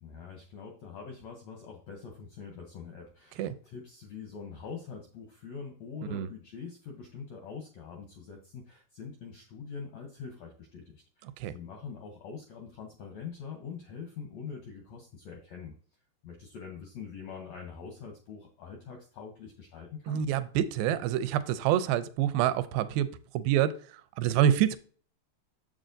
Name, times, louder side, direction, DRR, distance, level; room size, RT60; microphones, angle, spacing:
voice 1, 0.0-15.8 16.2-20.2, left 6 dB, 80° left, 2 dB, 1.5 m, -44 dB
voice 2, 20.1-23.1 23.3-23.7 24.2-24.8, right 10 dB, 85° right, 13 dB, 2.4 m, -26 dB
7.4 x 6.8 x 2.6 m, 0.44 s
omnidirectional pair, 4.2 m